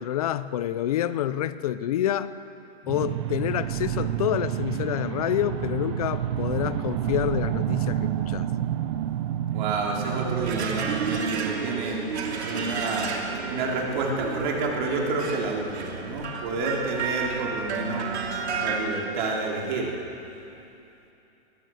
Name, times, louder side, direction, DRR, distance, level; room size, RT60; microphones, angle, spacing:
voice 1, 0.0-2.3 2.8-8.5, left 11 dB, 35° left, 14 dB, 0.5 m, -28 dB
sound 1, 2.9-11.2, right 11 dB, 25° right, 0.5 m, -29 dB
voice 2, 9.5-12.0 12.4-13.1 13.5-18.1 18.6-19.9, right 3 dB, 45° right, -1 dB, 3.8 m, -29 dB
sound 2, 10.1-18.8, right 5 dB, 75° right, 3.2 m, -32 dB
21.5 x 15.5 x 7.8 m, 2.9 s
hypercardioid pair, 165°, 33 cm